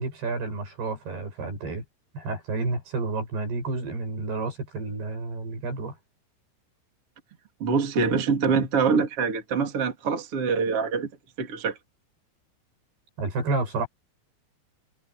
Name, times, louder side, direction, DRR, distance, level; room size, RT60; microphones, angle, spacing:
voice 1, 0.0-1.8 2.1-6.0 13.2-13.9, right 3 dB, 60° right, 9.8 m, -30 dB
voice 2, 7.6-11.1 11.4-11.8, right 5 dB, 35° right, 3.6 m, -24 dB
omnidirectional pair, 5.3 m